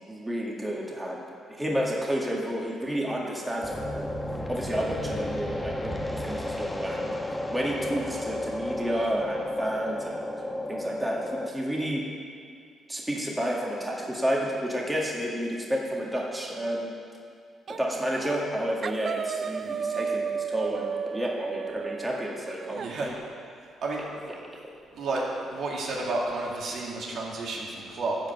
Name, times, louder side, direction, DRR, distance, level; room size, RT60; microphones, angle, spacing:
voice 1, 0.1-4.1 4.5-7.1 7.5-10.2 10.7-12.0 12.9-16.9 17.8-23.2, equal, 10° right, -3 dB, 1.9 m, -31 dB
sound 1, 3.6-11.5, left 1 dB, 10° left, 1.1 m, -33 dB
sound 2, 17.7-17.9 18.2-18.5 18.8-22.9, right 6 dB, 50° right, 0.3 m, -33 dB
voice 2, 22.7-23.1 23.8-24.3 24.9-28.2, right 2 dB, 70° right, -3 dB, 2.3 m, -31 dB
13.0 x 5.2 x 7.9 m, 2.2 s
cardioid pair, 90°, 0 cm